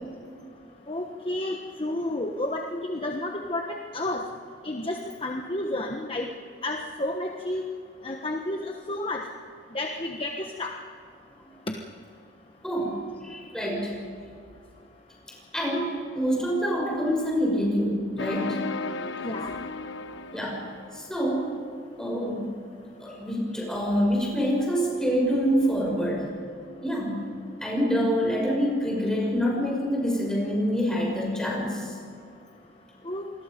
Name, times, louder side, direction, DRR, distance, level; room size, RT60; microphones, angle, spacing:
voice 1, 0.9-4.2 4.6-6.3 6.6-7.7 8.0-9.3 9.7-10.7 19.2-19.5 33.0-33.2, left 1 dB, 30° left, 2 dB, 1.2 m, -31 dB
voice 2, 12.6-14.0 15.5-18.6 20.3-20.6 20.9-21.5 22.0-22.5 23.0-26.3 26.8-27.2 27.6-32.0, equal, 5° left, -2 dB, 6.0 m, -26 dB
sound 1, 18.2-21.2, left 3 dB, 75° left, 1.1 m, -34 dB
27.5 x 20.5 x 5.2 m, 2.4 s
head